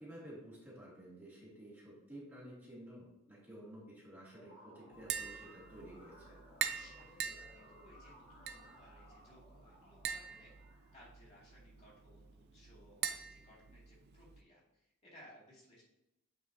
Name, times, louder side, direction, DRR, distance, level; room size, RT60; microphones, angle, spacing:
voice 1, 0.0-6.4, right 1 dB, 10° right, -8 dB, 2.2 m, -52 dB
sound 1, 4.3-10.9, equal, 60° left, 2.6 m, -60 dB
Tap, 4.9-14.4, right 8 dB, 50° right, 0.5 m, -44 dB
voice 2, 6.7-10.5 10.9-15.8, equal, 30° left, -6 dB, 2.4 m, -61 dB
9.0 x 4.9 x 2.7 m, 0.89 s
head